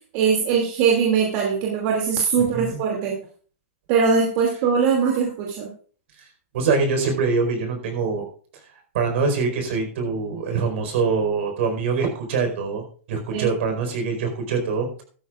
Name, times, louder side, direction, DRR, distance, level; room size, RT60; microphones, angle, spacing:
voice 1, 0.1-3.1 3.9-5.7 13.3-13.5, right 6 dB, 45° right, 0 dB, 2.6 m, -21 dB
voice 2, 6.5-8.3 8.9-15.0, right 4 dB, 60° right, 4 dB, 4.7 m, -24 dB
15.5 x 13.0 x 2.5 m, 0.43 s
hypercardioid pair, 135°, 7 cm